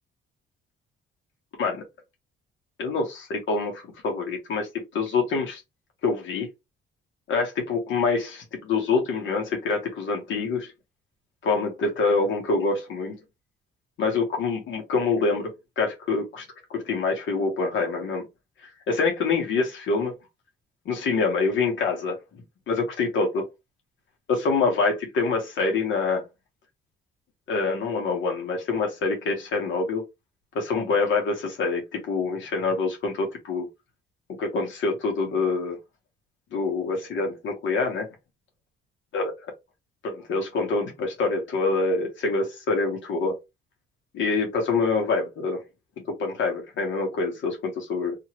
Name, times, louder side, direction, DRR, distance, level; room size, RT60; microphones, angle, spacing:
voice 1, 2.8-4.6 4.9-5.6 6.0-6.5 7.3-10.7 11.4-13.1 14.0-18.2 18.6-20.1 20.8-22.2 22.7-23.4 24.3-26.2 27.5-30.0 30.5-33.7 34.4-35.8 36.5-38.1 39.1-39.3 40.0-43.3 44.1-45.6 46.1-48.2, left 4 dB, 75° left, 1.3 m, -26 dB
3.0 x 2.8 x 2.9 m
cardioid pair, 90°, 20 cm